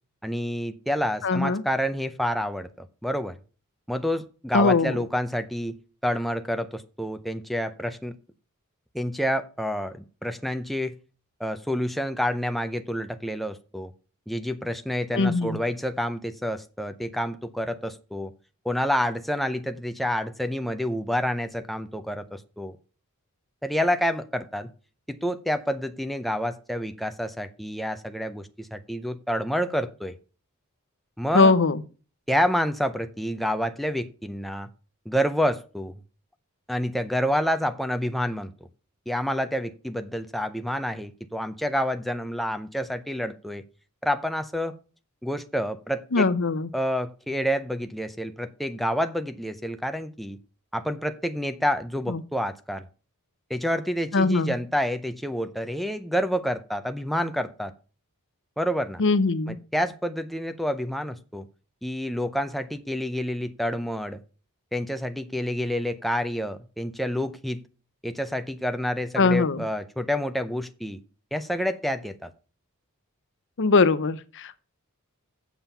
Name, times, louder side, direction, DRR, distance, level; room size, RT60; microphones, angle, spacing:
voice 1, 0.2-3.4 3.9-5.8 6.0-8.1 8.9-10.9 11.4-13.9 14.3-18.3 18.6-22.8 23.6-24.7 25.1-30.2 31.2-31.5 32.3-34.7 35.1-35.9 36.7-38.5 39.1-43.6 44.0-44.7 45.2-46.3 46.7-50.4 50.7-52.8 53.5-57.7 58.6-59.0 59.5-61.5 61.8-64.2 64.7-67.6 68.0-71.0 71.3-72.3, equal, ahead, 0.5 m, -28 dB
voice 2, 1.2-1.6 4.5-5.0 15.1-15.6 31.3-31.8 46.1-46.7 52.1-52.2 54.1-54.5 59.0-59.6 69.2-69.6 73.6-74.6, left 3 dB, 55° left, 0.7 m, -21 dB
7.9 x 7.1 x 5.5 m
head